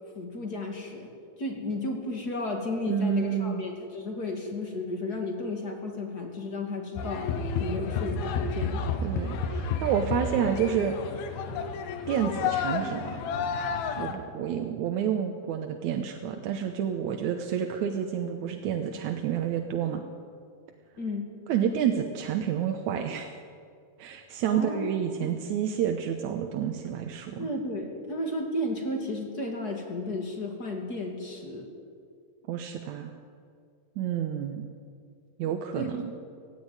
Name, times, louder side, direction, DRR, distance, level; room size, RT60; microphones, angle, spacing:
voice 1, 0.1-1.1 1.4-7.3 7.6-8.8 21.0-21.3 24.4-25.4 27.4-31.7 35.4-35.9, left 2 dB, 30° left, 2 dB, 2.4 m, -33 dB
voice 2, 2.9-3.6 9.0-11.0 12.1-13.2 14.0-20.0 21.5-23.4 24.0-27.5 32.5-33.1 34.0-34.7 35.4-36.0, right 8 dB, 70° right, 5 dB, 2.0 m, -29 dB
sound 1, 7.0-14.1, left 5 dB, 85° left, 3.1 m, -31 dB
17.0 x 16.5 x 9.7 m, 2.3 s
omnidirectional pair, 4.3 m